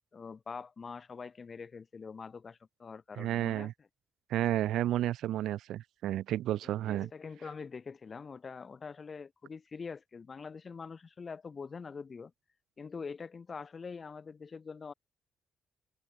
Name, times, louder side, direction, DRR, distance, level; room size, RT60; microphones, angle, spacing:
voice 1, 0.1-3.7 6.6-12.3 12.8-14.9, left 5 dB, 35° left, 2.0 m, -44 dB
voice 2, 3.2-3.7 4.3-7.1, right 13 dB, 80° right, 0.7 m, -31 dB
cardioid pair, 90°, 0 cm